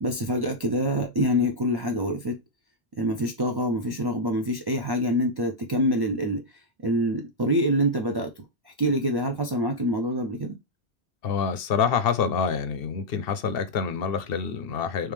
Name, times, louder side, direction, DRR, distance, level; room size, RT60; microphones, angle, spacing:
voice 1, 0.0-2.4 3.0-6.4 6.8-10.6, equal, 45° right, 0.3 m, -26 dB
voice 2, 11.2-15.1, left 6 dB, 65° left, 0.7 m, -26 dB
3.2 x 3.2 x 3.4 m
omnidirectional pair, 1.1 m